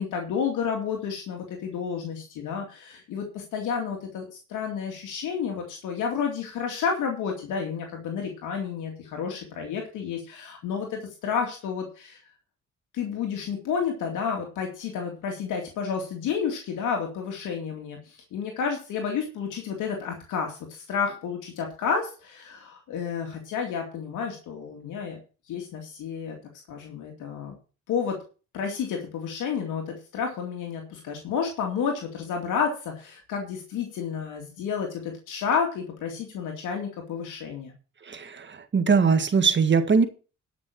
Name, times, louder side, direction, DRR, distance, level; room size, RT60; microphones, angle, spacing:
voice 1, 0.0-12.2 12.9-25.2 25.5-26.4 26.7-27.5 27.9-28.2 28.5-37.7, left 6 dB, 85° left, 2 dB, 2.5 m, -31 dB
voice 2, 38.1-40.1, right 5 dB, 40° right, 9 dB, 1.7 m, -21 dB
12.0 x 6.1 x 6.2 m, 0.35 s
cardioid pair, 90°, 30 cm